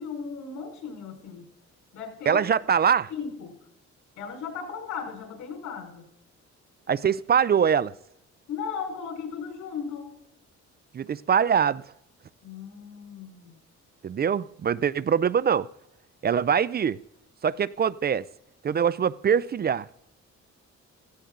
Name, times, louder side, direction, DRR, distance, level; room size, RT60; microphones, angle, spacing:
voice 1, 0.0-1.4 1.9-2.4 3.1-3.6 4.2-6.0 8.5-10.2 12.4-13.6, left 6 dB, 90° left, 4.8 m, -36 dB
voice 2, 2.3-3.1 6.9-7.9 10.9-11.8 14.0-15.7 16.2-17.0 17.4-18.2 18.6-19.9, right 7 dB, 35° right, 0.4 m, -23 dB
16.5 x 16.0 x 3.9 m
cardioid pair, 115°, 29 cm